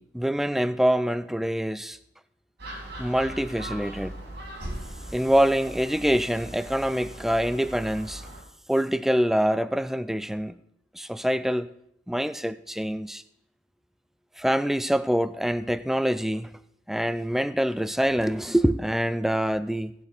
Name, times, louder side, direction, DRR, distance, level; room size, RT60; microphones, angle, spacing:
voice 1, 0.0-2.0 3.0-4.1 5.1-8.3 8.7-10.6 10.9-11.7 12.1-13.2 14.4-16.6 16.9-19.9, equal, ahead, 0.4 m, -25 dB
Gull seagull, 2.6-8.4, right 1 dB, 65° right, 3.5 m, -39 dB
16.0 x 6.2 x 5.0 m
head